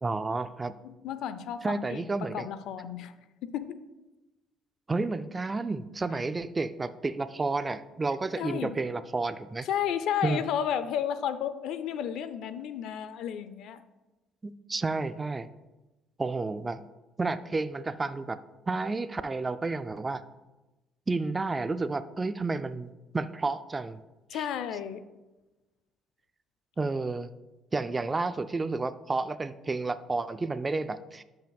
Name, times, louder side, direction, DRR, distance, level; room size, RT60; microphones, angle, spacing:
voice 1, 0.0-0.7 1.6-2.5 4.9-9.7 10.2-10.4 14.4-15.5 16.2-16.8 17.2-18.4 18.7-20.2 21.1-24.0 24.3-24.5 26.8-27.3 27.7-31.2, right 3 dB, 20° right, 12 dB, 0.3 m, -31 dB
voice 2, 0.8-3.1 3.4-3.8 8.4-8.7 9.7-13.8 24.3-25.0, left 9 dB, 75° left, 12 dB, 0.5 m, -32 dB
12.5 x 5.8 x 2.3 m, 1.1 s
cardioid pair, 105°, 0 cm